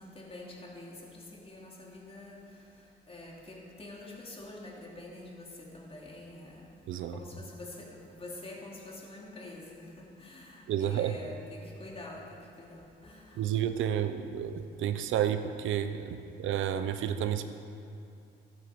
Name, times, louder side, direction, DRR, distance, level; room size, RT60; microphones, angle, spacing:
voice 1, 0.0-2.4 3.1-6.6 7.1-9.9 10.2-13.2, left 2 dB, 30° left, -2 dB, 3.1 m, -46 dB
voice 2, 6.9-7.2 10.7-11.1 13.4-17.4, right 10 dB, 80° right, 9 dB, 0.8 m, -31 dB
14.0 x 11.0 x 5.3 m, 2.6 s
cardioid pair, 90°, 20 cm